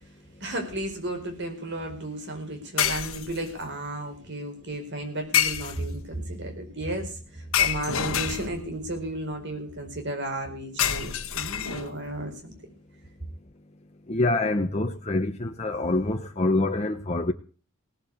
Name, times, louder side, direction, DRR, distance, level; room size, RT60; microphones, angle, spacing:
voice 1, 0.4-12.5, right 1 dB, 55° right, 4.7 m, -33 dB
sound 1, 0.7-0.9 2.8-3.6 5.3-6.1 7.5-8.8 10.8-12.1, left 9 dB, 70° left, 1.3 m, -27 dB
voice 2, 14.1-17.3, left 2 dB, 30° left, 0.9 m, -25 dB
18.0 x 7.6 x 8.5 m
head